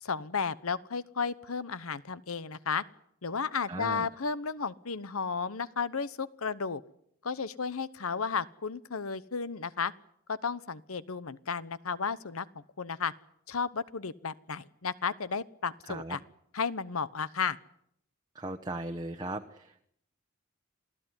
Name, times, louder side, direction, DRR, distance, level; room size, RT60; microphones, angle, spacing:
voice 1, 0.0-2.8 3.2-6.8 7.2-9.9 10.3-12.5 12.8-13.1 13.5-16.2 16.5-17.6, left 5 dB, 80° left, 17 dB, 1.0 m, -33 dB
voice 2, 3.7-4.1 15.9-16.2 18.3-19.9, right 2 dB, 20° right, 4 dB, 1.1 m, -38 dB
27.5 x 16.5 x 9.8 m, 0.74 s
head